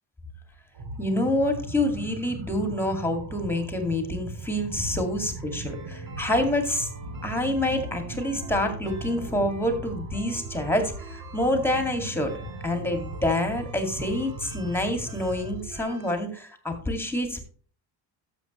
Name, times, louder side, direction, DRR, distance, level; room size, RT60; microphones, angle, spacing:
sound 1, 0.7-15.7, right 2 dB, 70° right, 1.8 m, -38 dB
voice 1, 1.0-6.9 7.2-12.4 12.6-17.4, left 1 dB, 5° left, 5 dB, 2.1 m, -27 dB
sound 2, 5.7-16.1, right 3 dB, 45° right, 2.8 m, -47 dB
12.0 x 7.6 x 3.0 m, 0.41 s
cardioid pair, 120°, 44 cm